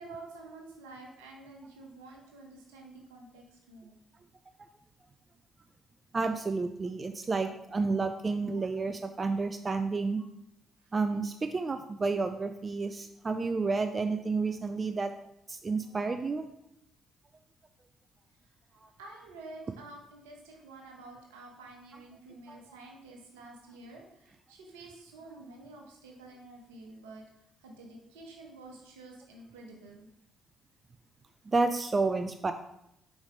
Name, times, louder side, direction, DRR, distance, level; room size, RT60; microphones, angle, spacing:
voice 1, 0.0-3.9 10.8-10.9 19.0-27.2 27.6-30.1, right 2 dB, 75° right, 1 dB, 1.2 m, -49 dB
voice 2, 6.1-10.3 10.9-15.1 15.5-16.5 18.8-18.9 22.5-22.6 31.5-32.5, right 3 dB, 35° right, 9 dB, 0.4 m, -30 dB
7.1 x 5.2 x 3.5 m, 0.80 s
figure-of-eight pair, 45°, 0 cm